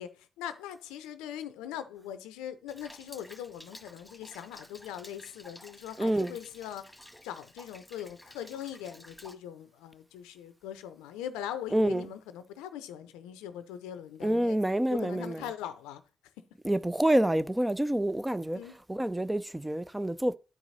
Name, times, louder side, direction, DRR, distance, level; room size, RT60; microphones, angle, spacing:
voice 1, 0.0-6.8 7.2-14.6 14.9-16.0 18.5-18.7, left 10 dB, 85° left, 0.5 m, -41 dB
Rain, 2.7-9.3, left 1 dB, 5° left, 1.8 m, -52 dB
voice 2, 6.0-6.3 11.7-12.1 14.2-15.5 16.6-18.6 18.9-20.4, right 1 dB, 15° right, 0.5 m, -27 dB
9.8 x 4.7 x 4.0 m
hypercardioid pair, 45°, 0 cm